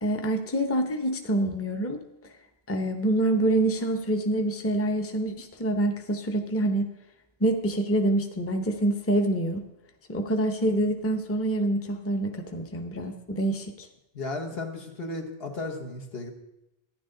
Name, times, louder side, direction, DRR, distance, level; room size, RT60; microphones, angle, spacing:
voice 1, 0.0-2.0 2.7-6.9 7.4-9.6 10.1-13.9, right 1 dB, 15° left, 5 dB, 0.7 m, -26 dB
voice 2, 14.1-16.3, left 2 dB, 70° left, 3 dB, 1.4 m, -34 dB
11.5 x 9.8 x 3.8 m, 0.90 s
omnidirectional pair, 1.1 m